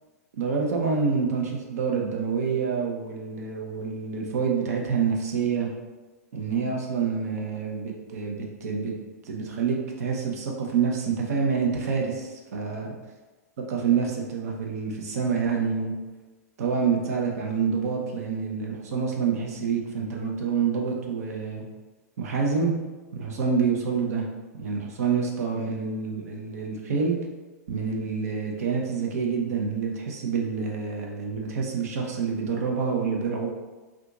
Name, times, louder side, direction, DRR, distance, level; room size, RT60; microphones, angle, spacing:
voice 1, 0.4-5.7 6.3-8.9 9.2-12.9 13.7-15.9 16.6-21.7 22.2-22.7 23.1-24.3 24.6-27.2 27.7-33.5, right 5 dB, 65° right, 0 dB, 0.8 m, -27 dB
2.7 x 2.4 x 3.7 m, 1.2 s
hypercardioid pair, 105°, 9 cm